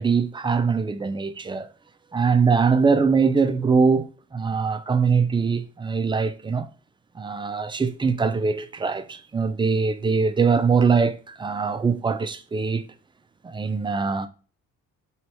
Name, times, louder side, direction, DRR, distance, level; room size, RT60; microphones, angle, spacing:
voice 1, 0.0-1.7 2.1-6.7 7.2-12.8 13.4-14.3, right 5 dB, 15° right, 0.4 m, -22 dB
4.5 x 3.2 x 2.9 m
cardioid pair, 90°, 30 cm